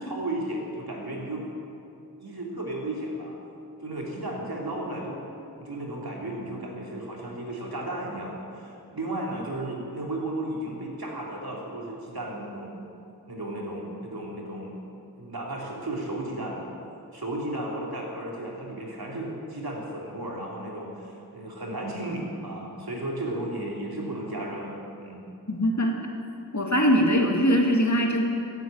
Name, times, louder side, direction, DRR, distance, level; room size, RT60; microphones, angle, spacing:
voice 1, 0.0-1.5 2.2-3.4 3.8-5.2 5.5-12.9 13.3-14.8 15.2-16.7 17.1-25.2, right 1 dB, 75° right, -3 dB, 3.0 m, -34 dB
voice 2, 25.5-26.0 26.5-28.2, equal, 50° left, 0 dB, 2.1 m, -22 dB
15.0 x 8.2 x 8.7 m, 2.7 s
wide cardioid pair, 50°, 37 cm